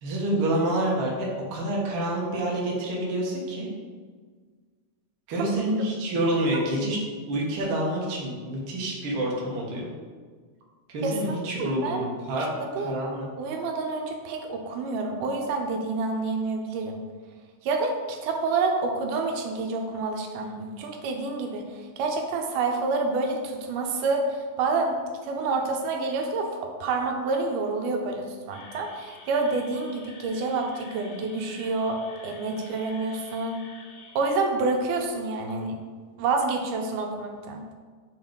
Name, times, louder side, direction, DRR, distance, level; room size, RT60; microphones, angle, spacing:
voice 1, 0.0-3.7 5.3-7.0 7.3-9.9 10.9-12.5 12.8-13.3, right 1 dB, 55° right, -3 dB, 1.5 m, -27 dB
voice 2, 11.0-12.1 12.6-13.0 13.4-17.0 17.6-33.6 34.2-35.8 36.2-37.6, right 3 dB, 90° right, 3 dB, 2.2 m, -28 dB
sound 1, 28.5-34.4, left 4 dB, 85° left, 1.2 m, -48 dB
8.8 x 3.2 x 3.8 m, 1.5 s
omnidirectional pair, 3.7 m